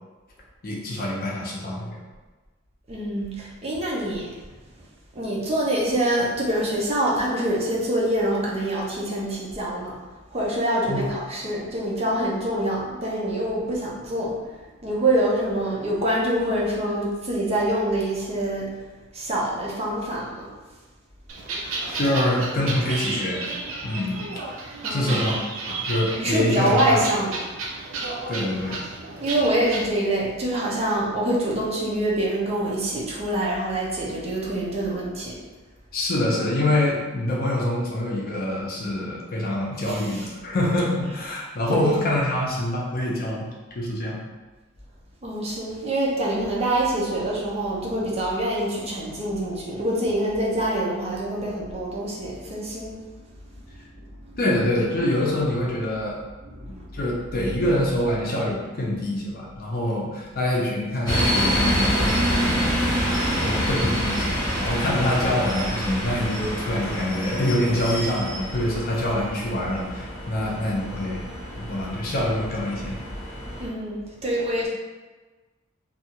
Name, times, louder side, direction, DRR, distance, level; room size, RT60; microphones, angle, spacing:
voice 1, 0.6-2.0 10.9-11.1 22.0-23.4 23.8-24.2 24.9-25.3 25.7-27.0 28.3-28.8 35.9-43.5 43.8-44.2 54.4-56.2 56.9-63.0 63.4-71.2 71.5-73.0, left 1 dB, 45° left, -3 dB, 0.6 m, -25 dB
voice 2, 2.9-4.3 5.2-9.9 10.3-14.4 14.8-18.7 19.1-20.5 24.8-25.4 26.2-27.3 29.2-35.4 39.9-40.0 41.7-41.9 45.2-53.0 56.6-56.8 73.6-74.7, right 1 dB, 30° right, -5 dB, 0.6 m, -25 dB
sound 1, 21.3-29.8, right 3 dB, 85° right, 0.5 m, -32 dB
sound 2, 61.1-73.7, equal, 20° left, 1.1 m, -27 dB
2.6 x 2.3 x 2.8 m, 1.3 s
head